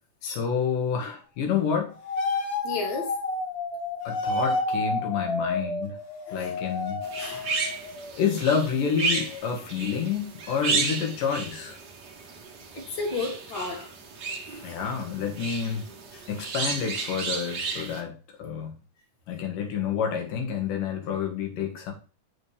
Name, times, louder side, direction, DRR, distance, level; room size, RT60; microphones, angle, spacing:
voice 1, 0.2-1.9 4.0-6.0 6.3-7.0 8.2-11.8 14.6-15.9 16.3-18.7 19.3-21.9, left 7 dB, 90° left, 3 dB, 3.2 m, -28 dB
sound 1, 2.0-8.6 8.8-9.4, left 3 dB, 55° left, 1.8 m, -31 dB
voice 2, 2.6-3.1 6.3-6.5 7.2-7.5 12.7-13.9 14.4-14.8 16.1-16.2, left 3 dB, 35° left, -2 dB, 2.6 m, -33 dB
sound 2, 7.0-18.0, right 4 dB, 50° right, 1.2 m, -33 dB
7.6 x 6.4 x 3.3 m, 0.35 s
omnidirectional pair, 3.7 m